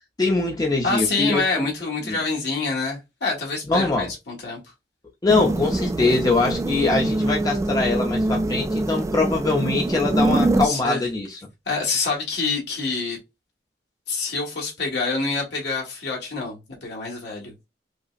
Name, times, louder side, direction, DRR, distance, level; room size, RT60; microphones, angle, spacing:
voice 1, 0.2-1.6 2.0-2.2 3.7-4.1 5.2-11.4, left 3 dB, 20° left, 0.6 m, -23 dB
voice 2, 0.8-4.6 10.6-11.0 11.7-13.2 14.1-17.5, left 3 dB, 70° left, 1.3 m, -26 dB
sound 1, 5.3-10.7, right 2 dB, 20° right, 0.3 m, -24 dB
5.0 x 2.0 x 2.4 m
head